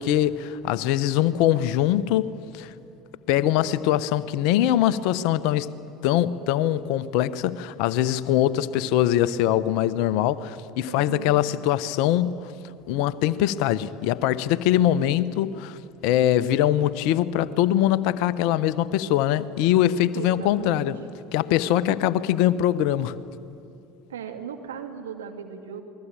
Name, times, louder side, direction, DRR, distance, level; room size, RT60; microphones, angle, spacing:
voice 1, 0.0-2.7 3.3-5.7 6.0-12.5 12.9-15.8 16.0-21.0 21.3-23.2, left 12 dB, 65° left, 0.9 m, -22 dB
voice 2, 10.9-11.3 20.1-20.9 24.1-25.8, right 7 dB, 80° right, 2.4 m, -36 dB
28.5 x 21.0 x 8.8 m
hypercardioid pair, 70°, 0 cm